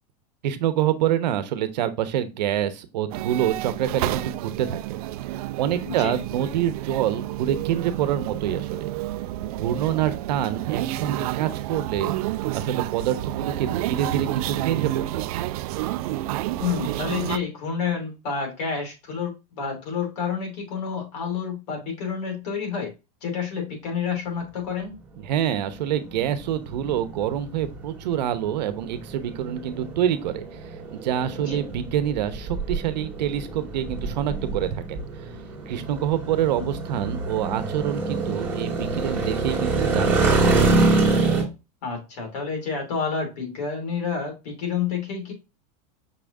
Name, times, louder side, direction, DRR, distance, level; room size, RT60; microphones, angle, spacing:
voice 1, 0.4-5.0 5.3-8.9 9.5-15.3 25.2-30.5 30.9-35.0 35.7-40.4, right 10 dB, 85° right, 0.9 m, -26 dB
sound 1, 3.1-17.4, right 15 dB, 60° right, 0.4 m, -30 dB
voice 2, 16.6-22.9 23.2-24.9 31.5-31.6 36.5-36.7 41.8-45.3, left 6 dB, 70° left, 3.0 m, -29 dB
sound 2, 25.3-41.4, right 3 dB, 10° right, 2.0 m, -26 dB
5.7 x 3.6 x 2.6 m
supercardioid pair, 160°, 21 cm